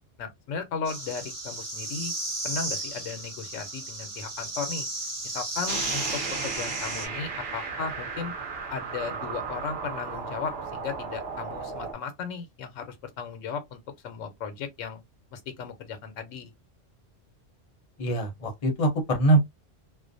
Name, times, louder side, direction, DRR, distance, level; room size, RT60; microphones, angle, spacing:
voice 1, 0.2-2.1 2.4-4.9 5.2-8.3 8.7-15.0 15.3-16.5, left 6 dB, 85° left, 1.0 m, -36 dB
sound 1, 0.8-7.1, right 2 dB, 15° right, 0.9 m, -34 dB
sound 2, 5.7-11.9, right 5 dB, 55° right, 0.9 m, -35 dB
voice 2, 18.0-19.4, right 2 dB, 40° left, 0.7 m, -23 dB
2.4 x 2.1 x 2.5 m
omnidirectional pair, 1.3 m